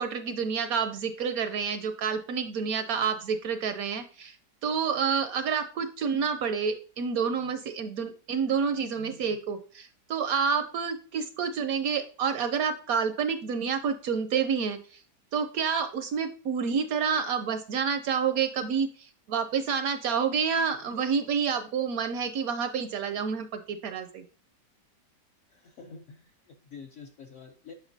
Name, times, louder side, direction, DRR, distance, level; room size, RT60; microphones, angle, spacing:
voice 1, 0.0-4.4 4.6-15.0 15.3-24.2, right 6 dB, 70° right, 10 dB, 0.9 m, -29 dB
voice 2, 25.5-27.7, left 5 dB, 65° left, 4 dB, 0.7 m, -47 dB
8.0 x 5.7 x 2.6 m, 0.40 s
omnidirectional pair, 1.9 m